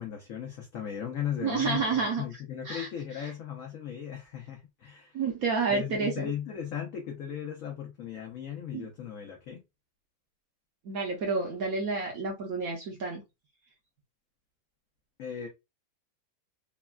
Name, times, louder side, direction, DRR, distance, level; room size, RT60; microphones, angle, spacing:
voice 1, 0.0-5.2 5.7-9.6 15.2-15.5, left 9 dB, 85° left, 0.7 m, -37 dB
voice 2, 1.4-2.2 2.6-2.9 3.2-3.3 5.1-6.3 8.7-8.9 10.8-13.2, right 4 dB, 65° right, 0.9 m, -30 dB
3.3 x 2.2 x 2.2 m
omnidirectional pair, 2.1 m